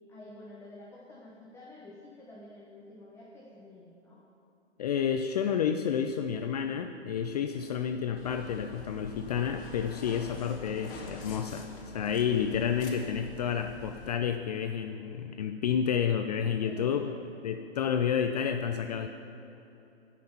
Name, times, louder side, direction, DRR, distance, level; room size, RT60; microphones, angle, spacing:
voice 1, 0.1-4.3 7.5-7.7 16.6-17.2, left 1 dB, 10° left, -4 dB, 1.0 m, -50 dB
voice 2, 4.8-11.7 11.9-17.1 17.4-19.1, left 8 dB, 35° left, 7 dB, 0.4 m, -30 dB
sound 1, 8.2-14.1, left 3 dB, 55° left, 2.0 m, -45 dB
17.0 x 6.0 x 5.7 m, 3.0 s
hypercardioid pair, 130°, 34 cm